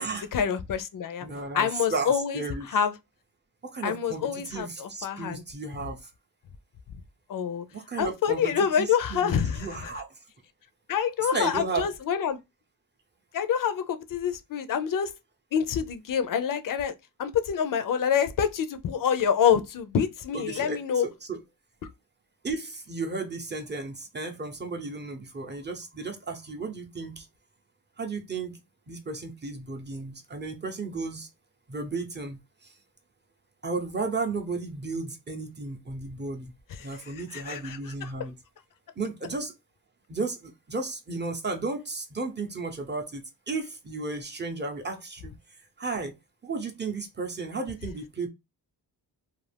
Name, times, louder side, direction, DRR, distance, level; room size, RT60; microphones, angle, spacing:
voice 1, 0.3-1.3 1.5-3.0 3.8-5.4 7.3-7.6 8.0-9.9 10.9-12.4 13.3-15.1 15.5-21.1 36.8-38.1, left 8 dB, 55° left, 0.5 m, -27 dB
voice 2, 1.2-2.7 3.6-6.1 7.7-10.1 11.3-11.9 20.3-21.4 22.4-27.3 28.0-28.6 28.9-31.3 31.7-32.4 33.6-36.5 36.8-38.3 39.0-39.5 40.1-45.3 45.8-46.1 46.4-48.3, right 3 dB, 25° right, 0.7 m, -34 dB
2.5 x 2.3 x 3.2 m
cardioid pair, 90°, 41 cm